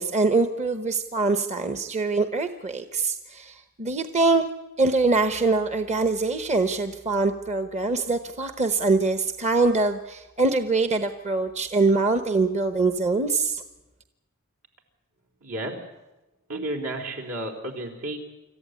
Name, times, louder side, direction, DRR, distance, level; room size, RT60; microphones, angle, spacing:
voice 1, 0.0-4.4 4.8-13.6, right 3 dB, 30° right, 8 dB, 1.0 m, -24 dB
voice 2, 15.4-15.8 16.5-18.2, right 1 dB, 75° right, 2 dB, 4.3 m, -32 dB
26.5 x 14.5 x 9.7 m, 1.1 s
head